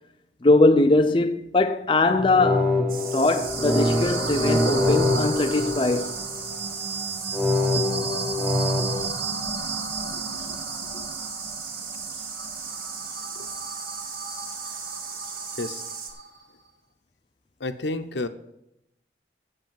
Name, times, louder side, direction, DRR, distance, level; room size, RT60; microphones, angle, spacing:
voice 1, 0.4-2.7 3.1-6.2, left 2 dB, 30° left, 0.5 m, -21 dB
sound 1, 2.1-6.5 7.3-9.1, left 2 dB, 5° right, 1.0 m, -25 dB
sound 2, 2.9-16.1, right 6 dB, 50° right, 1.9 m, -37 dB
sound 3, 3.0-16.4, right 3 dB, 70° right, 2.1 m, -34 dB
voice 2, 17.6-18.3, left 2 dB, 85° left, 0.8 m, -30 dB
8.0 x 7.8 x 7.5 m
head